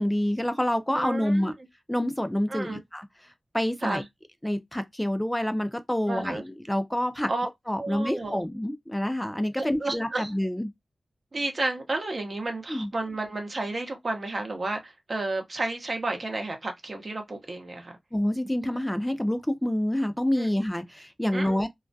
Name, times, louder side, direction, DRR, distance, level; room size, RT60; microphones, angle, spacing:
voice 1, 0.0-1.5 1.9-3.1 3.5-4.0 4.4-7.3 7.7-10.7 12.7-12.9 18.1-21.7, left 1 dB, 10° left, 0.4 m, -27 dB
voice 2, 0.9-1.5 2.5-2.8 3.8-4.0 6.1-6.4 7.3-7.5 7.8-8.4 9.6-10.3 11.3-18.0 20.4-20.5 21.3-21.6, right 2 dB, 50° right, 0.6 m, -31 dB
2.3 x 2.1 x 2.5 m
wide cardioid pair, 65°, 0 cm